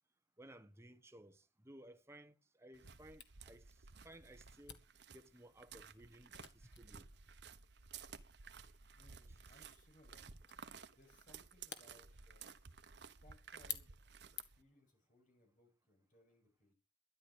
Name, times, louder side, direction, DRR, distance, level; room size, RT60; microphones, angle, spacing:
voice 1, 0.4-4.8 5.1-7.1, right 1 dB, 15° right, 1.2 m, -59 dB
sound 1, 2.7-14.6, right 5 dB, 65° right, 1.2 m, -56 dB
Camera, 3.2-14.8, left 9 dB, 65° left, 1.8 m, -55 dB
voice 2, 8.6-10.3 10.6-12.6 12.9-16.8, left 1 dB, 45° left, 7.8 m, -69 dB
13.0 x 10.5 x 6.6 m
head